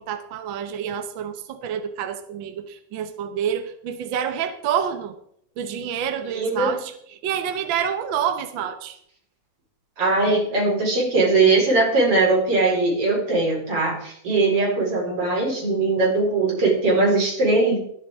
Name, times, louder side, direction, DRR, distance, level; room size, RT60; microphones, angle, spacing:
voice 1, 0.0-5.1 5.6-9.0, right 8 dB, 65° right, 8 dB, 1.2 m, -28 dB
voice 2, 6.4-6.8 10.0-17.8, right 3 dB, 50° right, -2 dB, 5.3 m, -20 dB
23.0 x 8.3 x 3.6 m, 0.69 s
omnidirectional pair, 3.4 m